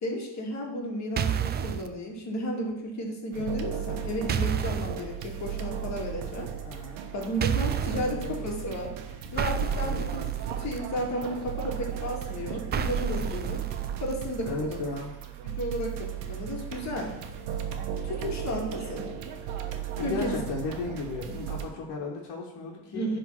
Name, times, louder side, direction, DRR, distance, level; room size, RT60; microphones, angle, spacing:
voice 1, 0.0-6.5 7.1-8.9 9.3-10.3 10.6-13.6 14.0-14.8 15.4-17.1 18.0-19.1 20.0-20.4 21.4-21.5 22.9-23.2, equal, 35° left, 0 dB, 2.0 m, -33 dB
sound 1, 1.2-1.9 4.3-5.0 7.4-8.1 9.4-10.8 12.7-14.1, right 7 dB, 25° right, 0.3 m, -30 dB
sound 2, 3.3-21.7, right 9 dB, 85° right, 1.2 m, -36 dB
voice 2, 6.6-7.0 7.9-8.5 9.8-10.1 14.4-15.1 20.0-23.2, left 3 dB, 55° left, -3 dB, 1.7 m, -35 dB
10.5 x 3.8 x 6.1 m, 0.91 s
cardioid pair, 125°, 45 cm